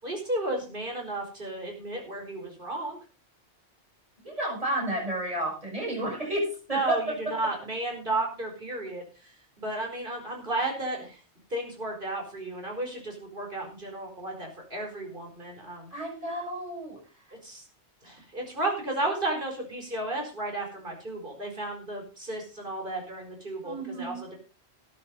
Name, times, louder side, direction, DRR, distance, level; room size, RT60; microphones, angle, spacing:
voice 1, 0.0-3.0 6.7-11.2 11.5-15.9 17.4-17.6 18.0-24.4, right 2 dB, 50° right, 1 dB, 4.9 m, -33 dB
voice 2, 4.2-7.0 15.9-17.0 23.6-24.3, right 1 dB, 30° right, -2 dB, 7.7 m, -31 dB
13.5 x 9.5 x 5.4 m, 0.36 s
omnidirectional pair, 1.1 m